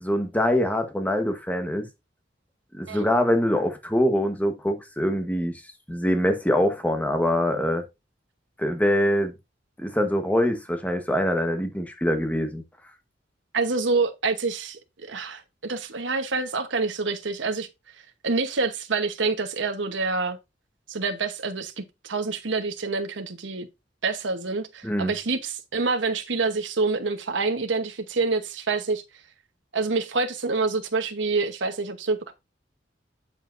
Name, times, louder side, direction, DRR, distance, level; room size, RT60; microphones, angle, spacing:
voice 1, 0.0-1.9 2.7-5.6 5.9-7.8 8.6-9.3 9.8-12.6 24.8-25.1, equal, 10° left, 1.2 m, -24 dB
voice 2, 13.5-17.7 18.2-20.4 20.9-23.7 24.0-29.0 29.7-32.3, right 4 dB, 85° right, 1.1 m, -27 dB
8.7 x 7.2 x 2.6 m
head